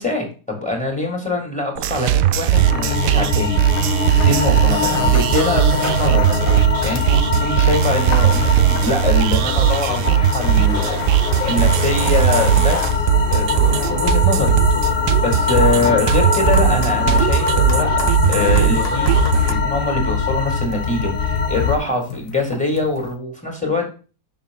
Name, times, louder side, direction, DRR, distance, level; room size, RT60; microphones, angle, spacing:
voice 1, 0.0-3.6 4.2-6.3 6.8-13.0 13.3-14.5 15.2-19.2 19.5-23.9, left 2 dB, 5° left, 1 dB, 3.2 m, -23 dB
sound 1, 1.8-19.5, right 13 dB, 80° right, 1.3 m, -18 dB
sound 2, 2.5-21.8, left 5 dB, 40° left, 1.1 m, -22 dB
sound 3, 3.8-3.9 4.2-7.2 7.5-19.6 20.4-23.1, left 4 dB, 55° left, 1.8 m, -34 dB
7.3 x 6.7 x 4.0 m, 0.35 s
omnidirectional pair, 1.8 m